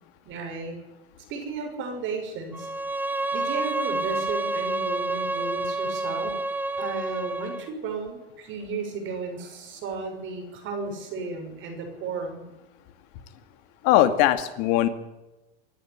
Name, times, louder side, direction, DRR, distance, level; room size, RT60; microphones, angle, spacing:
voice 1, 0.2-0.8 1.3-2.7 3.3-6.4 6.8-12.4, right 4 dB, 40° right, 4 dB, 6.5 m, -34 dB
Bowed string instrument, 2.5-7.7, right 2 dB, 5° right, 0.7 m, -29 dB
voice 2, 13.8-14.9, left 13 dB, 50° left, 9 dB, 2.4 m, -20 dB
24.5 x 11.0 x 9.9 m, 1.0 s
hypercardioid pair, 120°, 32 cm